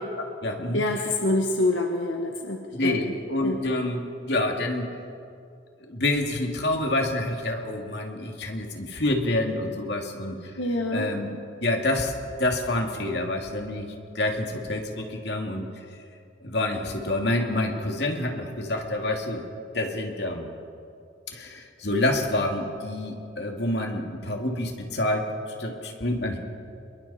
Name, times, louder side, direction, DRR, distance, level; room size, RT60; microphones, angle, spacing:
voice 1, 0.2-1.1 2.7-4.9 5.9-10.3 10.9-12.1 12.4-15.7 16.4-19.4 19.7-20.5 21.3-26.4, left 1 dB, 65° left, 2 dB, 2.6 m, -27 dB
voice 2, 0.7-2.9 3.4-3.6 10.6-11.1, left 2 dB, 90° left, 2 dB, 1.4 m, -26 dB
27.0 x 22.0 x 4.4 m, 2.4 s
head